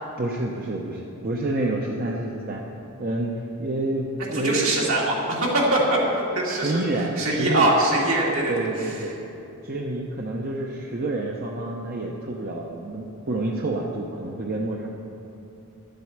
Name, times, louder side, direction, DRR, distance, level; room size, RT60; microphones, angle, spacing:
voice 1, 0.2-2.6 3.0-4.9 6.5-7.7 8.5-9.1 9.6-14.9, right 2 dB, 40° right, -1 dB, 0.8 m, -28 dB
voice 2, 4.3-6.7 7.2-9.1, right 1 dB, 70° right, -4 dB, 2.8 m, -23 dB
11.5 x 7.7 x 7.2 m, 3.0 s
head